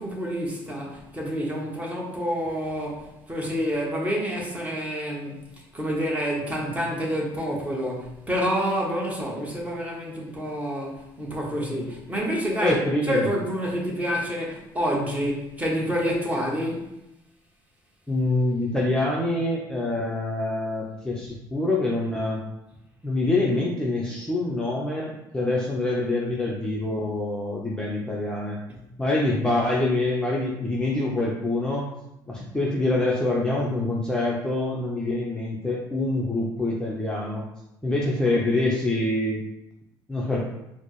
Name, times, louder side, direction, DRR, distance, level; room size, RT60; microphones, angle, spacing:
voice 1, 0.0-5.5 5.7-12.8 13.1-16.9, equal, 15° right, -2 dB, 1.0 m, -28 dB
voice 2, 12.6-13.3 18.1-22.4 23.0-28.6 29.0-31.9 32.3-37.4 37.8-39.4 40.1-40.4, left 2 dB, 10° left, -4 dB, 0.6 m, -25 dB
4.1 x 2.0 x 3.1 m, 0.87 s
supercardioid pair, 85°, 10 cm